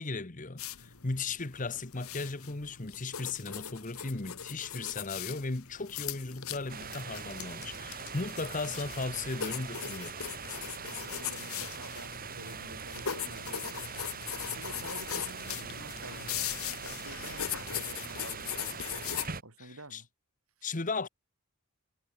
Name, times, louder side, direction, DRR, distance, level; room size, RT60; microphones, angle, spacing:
voice 1, 0.0-10.2 19.6-20.0 20.6-21.1, left 3 dB, 35° left, 1.1 m, -36 dB
sound 1, 0.6-19.3, left 9 dB, 80° left, 2.1 m, -40 dB
sound 2, 6.7-19.4, right 6 dB, 40° right, 4.0 m, -42 dB
voice 2, 10.8-13.9 14.5-18.8 19.4-20.1, right 2 dB, 80° right, 7.8 m, -50 dB
head